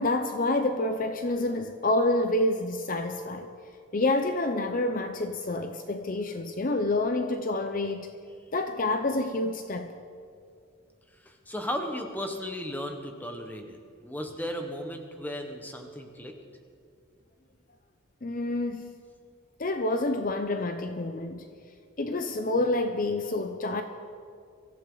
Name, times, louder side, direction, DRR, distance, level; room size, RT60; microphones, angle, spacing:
voice 1, 0.0-3.5 3.9-8.1 8.5-9.9 18.2-18.9 19.6-21.5 22.0-23.8, left 2 dB, 40° left, 0.6 m, -28 dB
voice 2, 11.2-16.3, equal, 10° left, 1.2 m, -35 dB
23.5 x 15.0 x 3.9 m
head